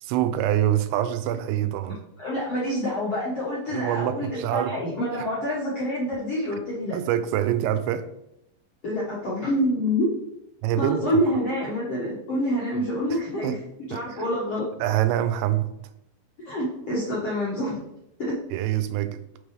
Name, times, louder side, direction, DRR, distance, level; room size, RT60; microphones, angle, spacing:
voice 1, 0.0-2.0 3.7-4.8 5.2-5.3 6.9-8.1 10.6-11.2 13.1-13.6 13.9-14.2 14.8-15.7 18.5-19.2, right 11 dB, 85° right, 2.8 m, -25 dB
voice 2, 2.2-6.9 8.8-10.1 10.8-13.6 13.9-14.6 16.4-17.9 18.2-18.3, equal, 60° left, 1.6 m, -27 dB
6.7 x 6.1 x 3.2 m
omnidirectional pair, 5.0 m